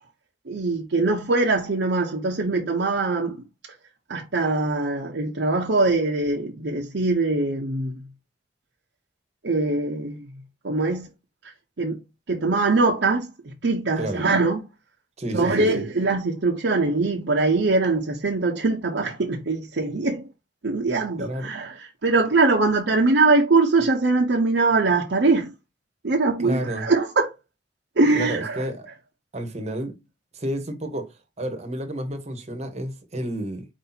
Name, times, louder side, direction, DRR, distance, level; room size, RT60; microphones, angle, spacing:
voice 1, 0.5-3.4 4.1-8.0 9.4-10.3 10.6-11.1 11.8-12.0 12.3-13.3 13.6-14.6 15.3-20.3 20.6-25.5 26.0-27.3 28.0-28.6, right 3 dB, 75° right, 0.7 m, -22 dB
voice 2, 15.2-15.8 21.2-21.5 26.4-26.9 28.1-28.9 29.3-30.0 30.3-33.7, right 1 dB, 40° right, 1.0 m, -30 dB
4.7 x 2.8 x 4.0 m
head